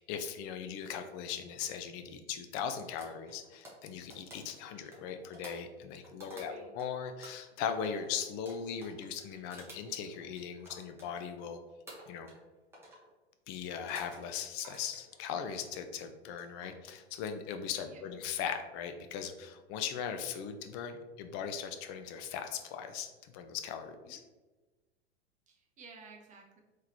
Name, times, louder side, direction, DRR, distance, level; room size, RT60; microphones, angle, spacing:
voice 1, 0.0-11.6 12.1-12.3 13.5-24.2, left 7 dB, 35° left, 7 dB, 0.4 m, -39 dB
sound 1, 3.0-6.9 7.2-11.5 11.9-12.5 12.7-13.1 13.7-14.2 14.6-15.7 16.2-16.7, equal, 5° right, 1.2 m, -52 dB
voice 2, 6.3-6.7 17.9-18.0 24.0-24.2 25.5-26.6, right 4 dB, 20° right, 0 dB, 0.8 m, -55 dB
3.7 x 3.2 x 2.8 m, 1.2 s
hypercardioid pair, 100°, 33 cm